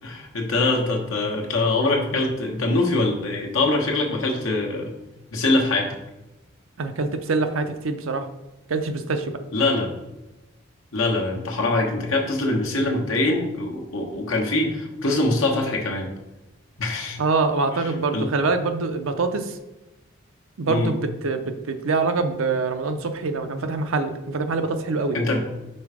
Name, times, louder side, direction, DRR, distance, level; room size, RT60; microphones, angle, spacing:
voice 1, 0.0-4.9 5.3-6.0 9.5-9.9 10.9-16.1 16.8-17.2 17.7-17.8 18.1-18.3 20.7-20.9 25.1-25.4, left 2 dB, 75° left, 0 dB, 1.2 m, -23 dB
voice 2, 6.8-8.3 8.7-9.4 17.2-19.6 20.6-25.2, right 3 dB, 75° right, 8 dB, 0.6 m, -24 dB
5.4 x 3.9 x 4.8 m, 1.0 s
head